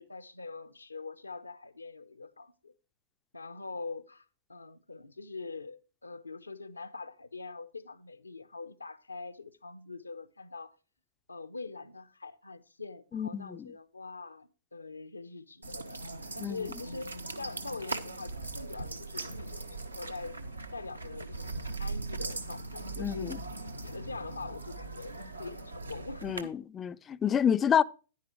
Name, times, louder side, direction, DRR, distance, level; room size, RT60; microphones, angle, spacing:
voice 1, 0.0-2.7 3.3-10.8 11.3-16.0 16.3-20.4 20.7-23.4 23.8-25.1 25.4-26.5, left 3 dB, 85° left, 0.7 m, -43 dB
voice 2, 13.1-13.7 16.4-16.6 23.0-23.4 26.2-27.8, left 8 dB, 20° left, 0.4 m, -28 dB
sound 1, 15.6-26.4, right 3 dB, 85° right, 1.0 m, -40 dB
10.5 x 9.5 x 3.1 m
figure-of-eight pair, 110°, 0 cm